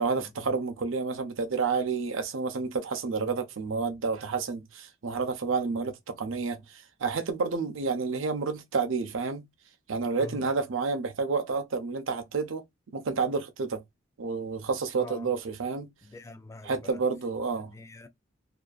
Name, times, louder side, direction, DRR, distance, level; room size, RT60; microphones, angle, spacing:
voice 1, 0.0-9.5 9.9-12.6 12.9-13.8 14.2-15.9 16.6-17.7, right 4 dB, 80° right, 0.6 m, -30 dB
voice 2, 10.2-10.5 15.0-15.3 16.0-17.0 17.7-18.1, left 3 dB, 15° left, 0.4 m, -44 dB
2.7 x 2.3 x 2.3 m
head